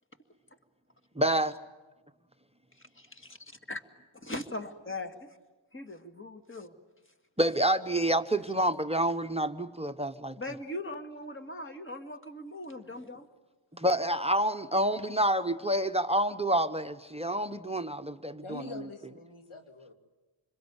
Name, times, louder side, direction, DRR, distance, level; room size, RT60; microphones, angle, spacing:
voice 1, 1.2-1.6 7.4-10.4 13.7-18.8, right 1 dB, 10° right, 11 dB, 0.9 m, -28 dB
voice 2, 3.0-3.4 3.7-3.8 4.2-5.3 5.7-6.7 10.4-13.3, left 1 dB, 25° left, 6 dB, 2.2 m, -40 dB
voice 3, 18.4-19.9, left 2 dB, 80° left, 5 dB, 2.8 m, -44 dB
27.5 x 22.0 x 9.8 m, 1.2 s
cardioid pair, 70°, 49 cm